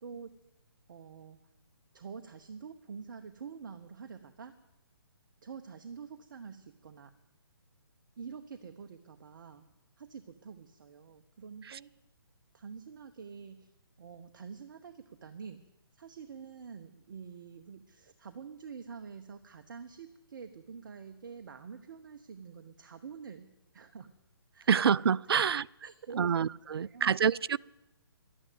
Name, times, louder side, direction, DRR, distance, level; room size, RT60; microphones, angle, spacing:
voice 1, 0.0-0.3 0.9-1.4 1.9-4.5 5.4-7.1 8.2-9.7 10.0-11.9 12.5-13.7 14.0-15.6 15.9-23.5 23.7-24.1 24.5-24.7 25.3-25.4 25.8-26.2 26.5-27.2, right 6 dB, 55° right, 0.9 m, -47 dB
voice 2, 24.7-25.7 26.2-27.6, right 7 dB, 70° right, 0.4 m, -27 dB
12.0 x 9.9 x 9.2 m
figure-of-eight pair, 145°, 13 cm